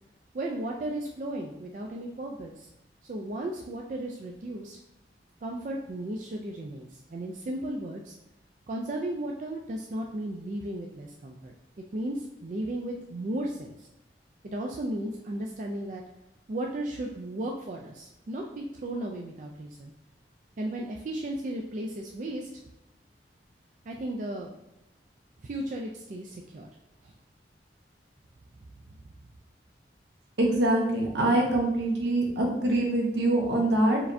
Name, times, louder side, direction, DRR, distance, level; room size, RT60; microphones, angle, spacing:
voice 1, 0.3-2.7 3.0-4.8 5.4-8.1 8.7-11.5 11.9-13.9 14.4-16.0 16.5-19.9 20.6-22.5 23.9-24.5 25.4-26.7 27.0-27.1, right 1 dB, 45° right, 0 dB, 0.4 m, -35 dB
voice 2, 30.4-34.0, right 1 dB, 75° right, 0 dB, 1.0 m, -24 dB
4.7 x 3.3 x 2.6 m, 0.88 s
head